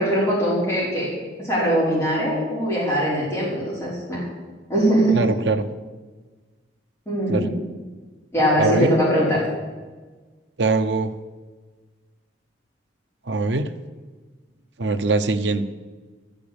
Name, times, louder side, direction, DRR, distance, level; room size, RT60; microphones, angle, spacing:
voice 1, 0.0-4.2 4.7-5.2 7.1-7.5 8.3-9.4, equal, 15° left, -8 dB, 4.8 m, -21 dB
voice 2, 5.1-5.6 7.3-7.5 8.6-8.9 10.6-11.1 13.3-13.7 14.8-15.6, right 3 dB, 70° right, 9 dB, 0.8 m, -22 dB
13.5 x 6.8 x 8.7 m, 1.3 s
head